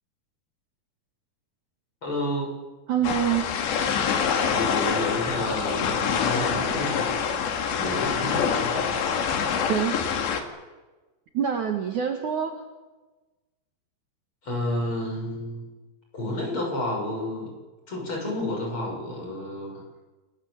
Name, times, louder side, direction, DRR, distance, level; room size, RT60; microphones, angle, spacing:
voice 1, 2.0-2.6 4.5-7.2 7.8-8.9 14.4-15.7 16.1-17.6 17.9-20.1, left 1 dB, 30° left, 0 dB, 7.6 m, -30 dB
voice 2, 2.9-3.5 9.5-10.0 11.3-12.6, right 8 dB, 55° right, 3 dB, 2.6 m, -26 dB
sound 1, 3.0-10.4, left 7 dB, 85° left, 4.3 m, -26 dB
28.5 x 21.0 x 8.2 m, 1.2 s
omnidirectional pair, 4.9 m